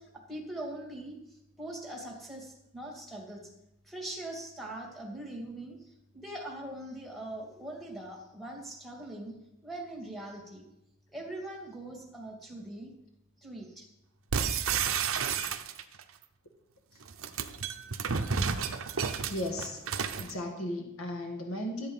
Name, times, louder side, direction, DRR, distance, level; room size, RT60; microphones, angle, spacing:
voice 1, 0.0-3.5 3.8-9.4 9.6-10.6 11.1-12.9 13.4-13.9, right 1 dB, ahead, -1 dB, 2.6 m, -42 dB
sound 1, 14.3-16.0 17.0-20.3, right 6 dB, 80° right, 0.8 m, -31 dB
voice 2, 19.3-19.8 20.2-21.9, left 1 dB, 90° left, 3 dB, 1.7 m, -35 dB
13.0 x 8.0 x 5.6 m, 0.87 s
head